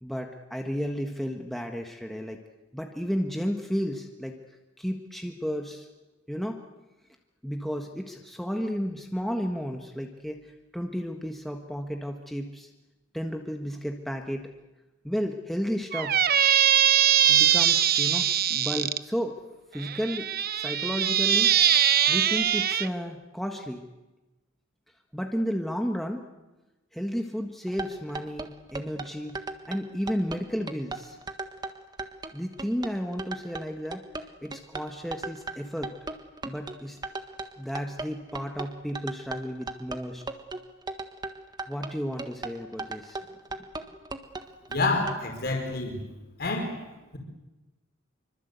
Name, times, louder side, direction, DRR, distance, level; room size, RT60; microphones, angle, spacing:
voice 1, 0.0-2.4 2.7-4.4 4.8-5.9 6.3-6.6 7.4-12.7 13.1-14.5 15.0-16.2 17.3-19.4 19.7-20.3 20.5-21.6 22.1-23.8 25.1-26.2 26.9-29.4 29.7-31.2 32.3-34.0 34.4-35.9 36.4-37.0 37.6-40.2 41.7-43.2 43.5-44.0, equal, ahead, 2 dB, 1.5 m, -32 dB
Squeak, 15.9-19.0 19.8-22.9, right 10 dB, 50° right, 0.9 m, -22 dB
sound 1, 27.7-45.1, right 3 dB, 20° right, 1.5 m, -37 dB
voice 2, 44.7-46.0 46.4-46.7, left 3 dB, 50° left, 2 dB, 5.0 m, -28 dB
27.0 x 24.5 x 8.2 m, 1.1 s
head